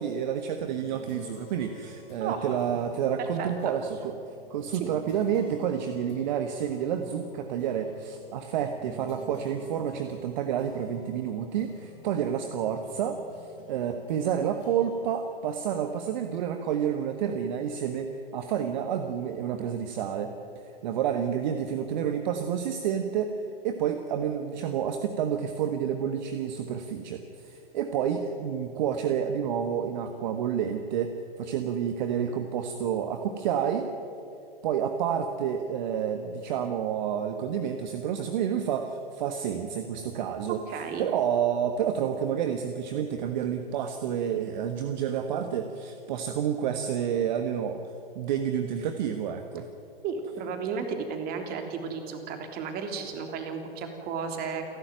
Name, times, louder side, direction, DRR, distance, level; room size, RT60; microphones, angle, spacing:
voice 1, 0.0-4.2 4.5-20.3 20.6-23.4 23.6-33.9 34.6-40.6 41.0-47.8 48.1-49.7, right 8 dB, 50° right, 7 dB, 1.4 m, -29 dB
sound 1, 0.6-16.5, left 2 dB, 60° left, 5.1 m, -51 dB
voice 2, 2.2-2.6 3.2-3.7 4.8-4.9 40.7-41.1 50.0-54.8, right 5 dB, 30° right, 5 dB, 3.2 m, -34 dB
29.0 x 12.0 x 9.2 m, 2.8 s
figure-of-eight pair, 110°, 29 cm